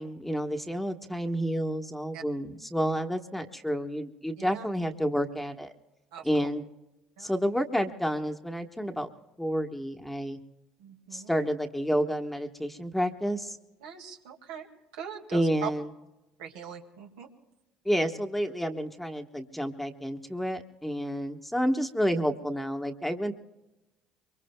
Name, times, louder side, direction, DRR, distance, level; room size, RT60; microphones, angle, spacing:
voice 1, 0.0-5.7 6.2-6.6 7.2-9.1 9.4-10.4 11.1-13.6 15.3-15.9 17.8-23.3, equal, 5° left, 4 dB, 1.2 m, -30 dB
voice 2, 10.8-11.3 13.8-14.7 14.9-15.7 16.4-17.3, right 8 dB, 85° right, 2 dB, 2.0 m, -41 dB
25.0 x 23.0 x 2.2 m, 1.0 s
hypercardioid pair, 70°, 3 cm